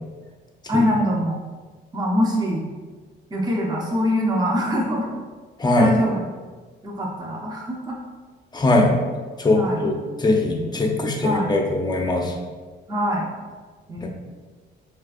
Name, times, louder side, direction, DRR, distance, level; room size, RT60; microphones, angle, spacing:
voice 1, 0.7-1.4 1.9-2.7 3.3-5.1 5.8-6.3 6.8-8.0 9.5-9.8 11.2-11.5 12.9-13.3 13.9-14.1, equal, 20° right, -2 dB, 0.7 m, -23 dB
voice 2, 5.6-5.9 8.5-8.9 9.4-12.3 14.0-14.1, left 2 dB, 20° left, 2 dB, 0.6 m, -21 dB
6.0 x 2.5 x 2.4 m, 1.4 s
cardioid pair, 90°, 20 cm